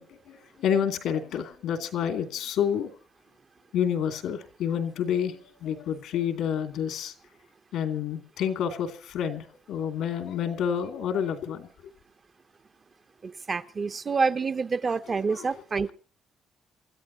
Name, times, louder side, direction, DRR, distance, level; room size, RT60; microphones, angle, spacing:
voice 1, 0.0-2.9 3.7-7.1 7.7-11.7 15.3-15.6, left 8 dB, 85° left, 2.6 m, -29 dB
voice 2, 13.2-15.9, right 4 dB, 40° right, 1.0 m, -27 dB
28.0 x 14.0 x 2.9 m
cardioid pair, 90°, 0 cm